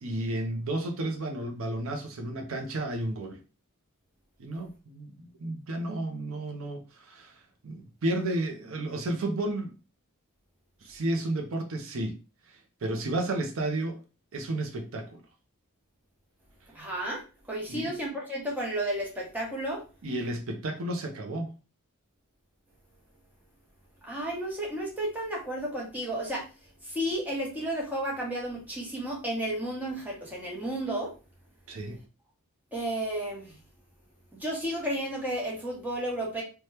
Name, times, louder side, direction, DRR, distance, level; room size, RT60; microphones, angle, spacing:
voice 1, 0.0-3.4 4.4-9.7 10.8-12.2 12.5-14.0 14.3-15.2 17.7-17.9 20.0-21.5 31.7-32.0, right 1 dB, 65° right, 0.5 m, -32 dB
voice 2, 16.7-19.8 24.0-26.5 26.8-31.1 32.7-33.6 34.3-36.4, right 1 dB, 5° right, 0.8 m, -32 dB
2.8 x 2.2 x 3.2 m
head